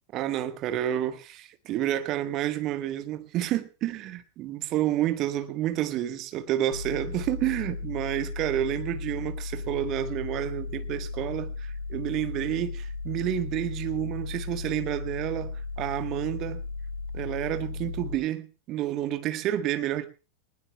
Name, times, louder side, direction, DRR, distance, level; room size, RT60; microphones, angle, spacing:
voice 1, 0.1-16.6 17.1-20.0, right 12 dB, 35° right, 1.5 m, -30 dB
sound 1, 6.7-18.2, left 4 dB, 80° left, 4.8 m, -35 dB
20.0 x 19.5 x 2.4 m
figure-of-eight pair, 90°, 0 cm